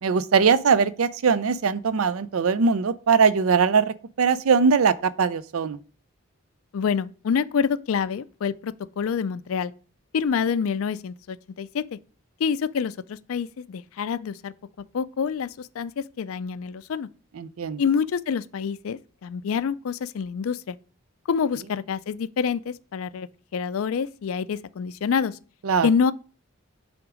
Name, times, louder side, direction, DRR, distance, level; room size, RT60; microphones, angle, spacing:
voice 1, 0.0-3.8 4.2-5.8 17.4-17.8 25.6-25.9, right 5 dB, 85° right, 0.5 m, -21 dB
voice 2, 6.7-9.7 10.1-11.8 12.4-14.5 14.9-17.1 17.8-20.8 21.3-25.4 25.8-26.1, left 6 dB, 80° left, 0.4 m, -27 dB
7.8 x 3.6 x 4.9 m
head